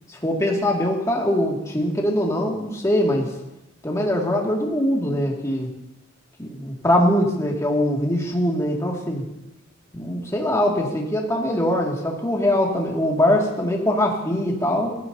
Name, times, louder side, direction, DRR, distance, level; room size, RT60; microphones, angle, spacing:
voice 1, 0.2-3.3 3.8-5.7 6.4-9.2 9.9-14.9, left 1 dB, 15° left, -1 dB, 2.3 m, -22 dB
18.5 x 14.5 x 2.8 m, 0.94 s
head